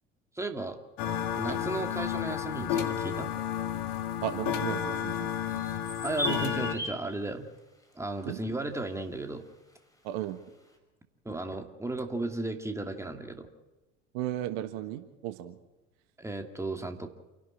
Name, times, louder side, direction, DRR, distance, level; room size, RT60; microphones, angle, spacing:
voice 1, 0.4-0.8 1.4-3.3 6.0-7.5 8.0-9.4 11.2-13.5 16.2-17.1, right 2 dB, 10° right, 5 dB, 2.5 m, -35 dB
sound 1, 1.0-6.7, left 9 dB, 60° left, 2.0 m, -31 dB
voice 2, 4.2-5.3 8.2-8.4 10.0-10.4 14.1-15.5, right 12 dB, 60° right, 10 dB, 1.4 m, -35 dB
sound 2, 5.3-7.1, right 1 dB, 10° left, 5.6 m, -36 dB
28.5 x 12.0 x 8.8 m, 1.1 s
figure-of-eight pair, 70°, 36 cm